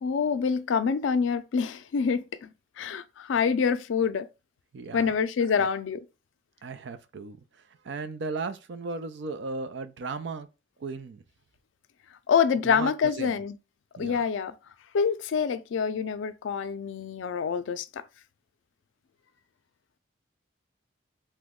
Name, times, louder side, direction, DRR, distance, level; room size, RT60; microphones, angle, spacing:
voice 1, 0.0-2.5 2.8-4.3 4.9-6.0 12.3-13.6 14.0-14.5 14.9-18.0, left 6 dB, 85° left, 0.4 m, -26 dB
voice 2, 4.7-5.1 5.6-5.7 6.6-10.5 10.8-11.2 12.6-13.4 14.0-14.2, right 4 dB, 65° right, 0.4 m, -36 dB
3.0 x 2.1 x 3.5 m
head